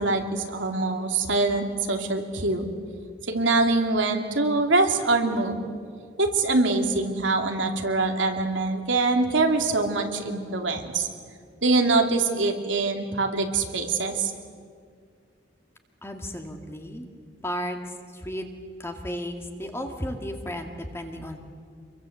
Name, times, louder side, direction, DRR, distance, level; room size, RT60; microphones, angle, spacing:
voice 1, 0.0-2.6 3.3-5.6 6.2-11.1 11.6-14.3, right 3 dB, 80° right, 3 dB, 2.8 m, -24 dB
voice 2, 16.0-17.1 17.4-17.8 18.1-18.5 18.8-21.4, equal, 15° left, 4 dB, 2.1 m, -33 dB
27.0 x 23.0 x 8.0 m, 2.1 s
head